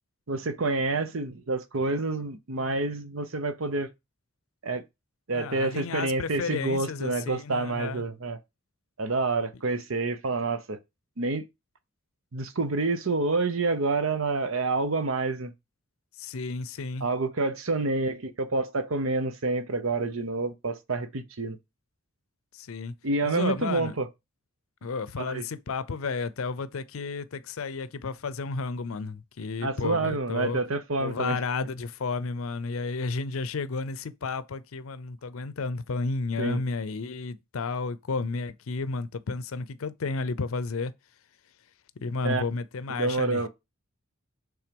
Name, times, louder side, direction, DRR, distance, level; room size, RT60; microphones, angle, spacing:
voice 1, 0.3-3.9 4.6-4.8 5.3-8.4 9.0-10.8 11.2-11.5 12.3-15.5 17.0-21.6 23.0-24.1 25.2-25.4 29.6-31.4 36.4-36.6 42.2-42.4 43.0-43.5, right 3 dB, 75° right, 0.8 m, -28 dB
voice 2, 5.3-8.0 16.2-17.1 22.5-22.9 23.2-23.9 24.8-30.6 31.0-40.9 42.0-43.4, left 4 dB, 75° left, 0.5 m, -32 dB
5.9 x 3.6 x 5.2 m
head